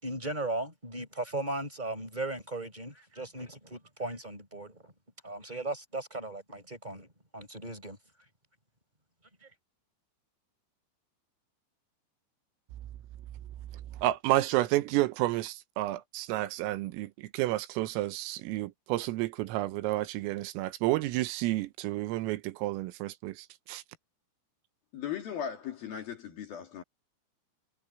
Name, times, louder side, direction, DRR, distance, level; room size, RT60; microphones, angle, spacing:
voice 1, 0.0-4.9 5.2-7.1 7.3-8.0, right 2 dB, 10° right, 4.4 m, -37 dB
voice 2, 14.0-23.8, right 17 dB, 90° right, 3.7 m, -30 dB
voice 3, 24.9-26.8, left 8 dB, 55° left, 3.6 m, -37 dB
omnidirectional pair, 5.8 m